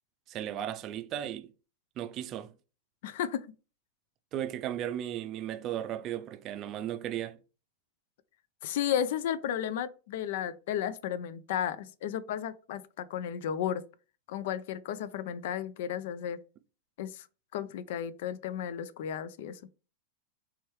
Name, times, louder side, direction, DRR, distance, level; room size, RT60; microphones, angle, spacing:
voice 1, 0.3-1.5 2.0-2.5 4.3-7.4, right 11 dB, 40° right, 0.4 m, -35 dB
voice 2, 3.0-3.5 8.6-13.8 14.3-16.4 17.0-17.3 17.5-19.6, left 9 dB, 65° left, 0.3 m, -33 dB
3.4 x 3.1 x 3.1 m
hypercardioid pair, 105°, 0 cm